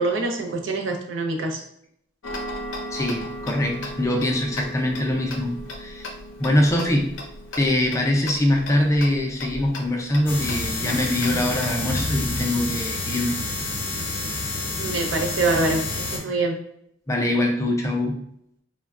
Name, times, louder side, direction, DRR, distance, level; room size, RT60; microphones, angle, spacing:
voice 1, 0.0-1.6 14.8-16.5, right 2 dB, 80° right, 3 dB, 0.5 m, -25 dB
Tick-tock, 2.2-12.5, left 1 dB, 85° left, 0.5 m, -37 dB
voice 2, 2.9-6.1 6.4-7.1 7.6-13.4 17.1-18.2, left 1 dB, 15° left, 1 dB, 0.4 m, -23 dB
sound 1, 10.3-16.2, left 2 dB, 50° left, 0.7 m, -28 dB
3.2 x 2.1 x 2.3 m, 0.71 s
head